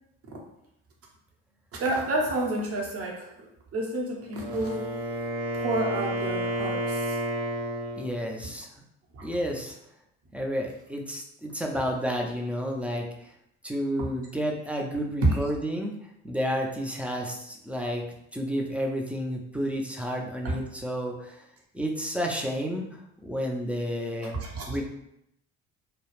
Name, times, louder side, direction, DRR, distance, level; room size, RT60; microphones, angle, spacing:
voice 1, 1.8-5.1 5.5-7.3 9.1-9.3 11.7-11.9 14.0-14.1 15.2-15.4 20.4-20.6 24.3-24.8, right 2 dB, 50° right, -1 dB, 0.8 m, -29 dB
Wind instrument woodwind instrument, 4.2-8.1, equal, 80° right, 0.6 m, -31 dB
voice 2, 8.0-8.7 9.2-9.8 10.3-13.3 13.6-18.0 18.3-21.5 21.7-24.4 24.7-24.8, equal, 5° right, 0 dB, 0.4 m, -31 dB
2.3 x 2.0 x 3.1 m, 0.79 s
hypercardioid pair, 60°, 31 cm